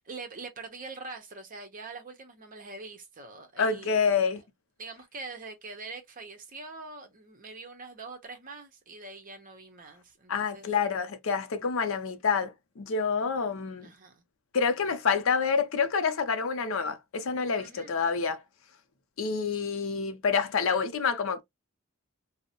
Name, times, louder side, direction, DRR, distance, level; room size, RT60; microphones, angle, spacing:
voice 1, 0.0-4.3 4.8-10.7 13.8-14.2 17.6-18.0, right 3 dB, 40° right, 0.7 m, -44 dB
voice 2, 3.6-4.4 10.3-13.9 14.5-18.4 19.2-21.4, left 5 dB, 65° left, 0.5 m, -28 dB
2.6 x 2.0 x 2.8 m
head